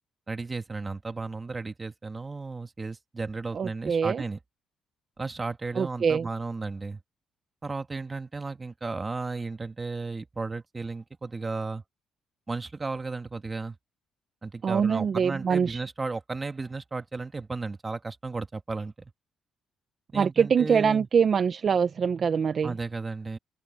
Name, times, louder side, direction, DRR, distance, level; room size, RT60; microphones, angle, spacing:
voice 1, 0.3-4.4 5.2-7.0 7.6-11.8 12.5-13.8 14.4-19.1 20.1-21.1 22.6-23.4, right 3 dB, 25° right, 2.0 m, -34 dB
voice 2, 3.5-4.2 5.8-6.2 14.6-15.8 20.1-22.7, right 6 dB, 50° right, 0.9 m, -24 dB
open air
cardioid pair, 90°, 0 cm